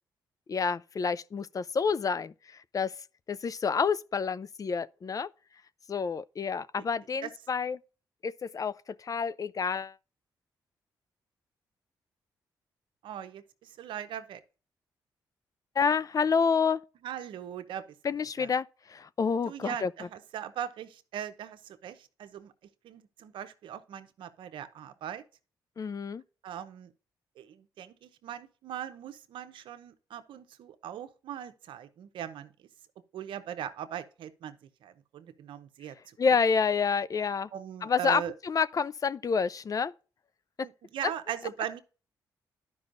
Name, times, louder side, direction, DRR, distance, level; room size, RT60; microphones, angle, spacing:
voice 1, 0.5-2.3 2.7-2.9 3.3-5.3 5.9-7.8 8.2-8.8 9.0-9.9 15.8-16.8 18.0-18.6 18.9-19.9 25.8-26.2 36.2-37.5 37.8-39.9 40.6-40.7, left 5 dB, 45° left, 0.5 m, -28 dB
voice 2, 13.0-14.4 17.0-17.8 18.4-18.5 19.4-22.5 22.8-25.2 26.4-26.9 27.4-32.5 33.1-34.6 34.8-36.4 37.5-38.3 40.6-41.8, right 10 dB, 80° right, 0.8 m, -40 dB
12.0 x 5.4 x 2.6 m
supercardioid pair, 55°, 8 cm